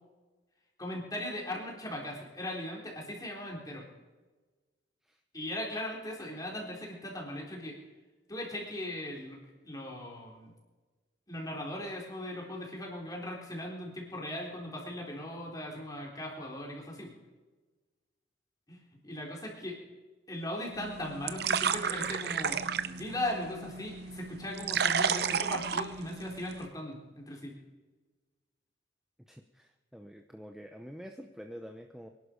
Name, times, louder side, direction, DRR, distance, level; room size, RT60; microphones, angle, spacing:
voice 1, 0.8-3.8 5.3-7.8 8.3-9.4 9.6-10.5 11.3-17.1 18.7-19.8 20.3-27.5, left 1 dB, 20° left, -2 dB, 4.0 m, -39 dB
sound 1, 20.7-26.7, right 6 dB, 55° right, 0.7 m, -32 dB
voice 2, 29.3-32.1, equal, ahead, 4 dB, 0.7 m, -47 dB
24.5 x 11.5 x 5.2 m, 1.3 s
head